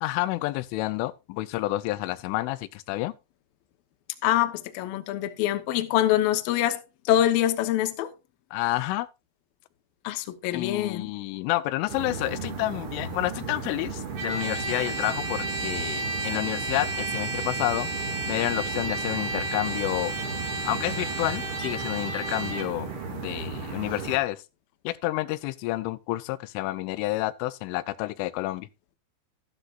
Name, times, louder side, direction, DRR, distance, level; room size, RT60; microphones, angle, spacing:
voice 1, 0.0-3.1 8.5-9.1 10.5-17.9 18.3-20.1 20.7-24.4 24.8-28.7, left 17 dB, 90° left, 3.2 m, -29 dB
voice 2, 4.2-8.1 10.0-11.1, left 12 dB, 70° left, 2.2 m, -25 dB
sound 1, 11.9-24.2, right 4 dB, 45° right, 2.0 m, -35 dB
Trumpet, 14.2-22.7, right 2 dB, 60° right, 4.9 m, -32 dB
13.0 x 12.0 x 2.5 m
omnidirectional pair, 5.5 m